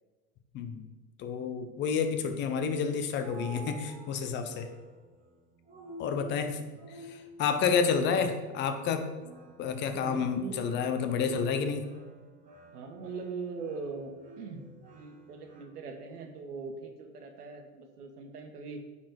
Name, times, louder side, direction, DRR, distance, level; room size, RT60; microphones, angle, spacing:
voice 1, 1.2-4.7 6.0-6.6 6.9-9.1 9.6-11.9, left 6 dB, 25° left, 7 dB, 0.7 m, -30 dB
sound 1, 3.2-15.6, right 2 dB, 15° right, 1.1 m, -51 dB
voice 2, 6.2-6.7 9.9-10.6 12.7-18.8, right 4 dB, 80° right, 4 dB, 1.4 m, -41 dB
9.2 x 4.3 x 4.7 m, 1.3 s
hypercardioid pair, 125°, 46 cm